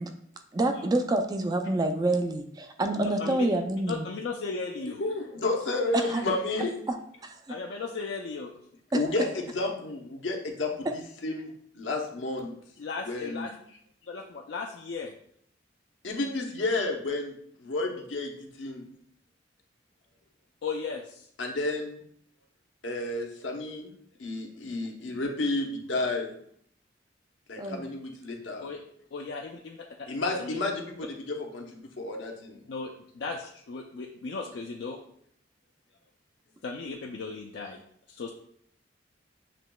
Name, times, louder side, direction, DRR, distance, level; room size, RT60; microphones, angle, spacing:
voice 1, 0.5-4.1 5.9-6.2 8.9-9.0 27.6-27.8, right 2 dB, 20° right, 6 dB, 0.4 m, -27 dB
voice 2, 2.9-3.4 3.9-5.0 6.3-6.4 7.5-8.5 12.8-13.5 14.0-15.1 20.6-21.3 28.6-28.8 29.1-30.1 30.4-30.6 32.7-35.0 36.6-37.8 38.1-38.3, left 4 dB, 65° left, 1 dB, 0.4 m, -36 dB
voice 3, 5.0-6.7 8.9-10.9 11.2-12.5 13.0-13.5 16.0-18.9 21.4-22.0 22.8-23.9 24.2-26.3 27.5-28.7 30.1-32.6, left 2 dB, 90° left, 1 dB, 0.9 m, -31 dB
7.5 x 3.0 x 2.2 m, 0.68 s
head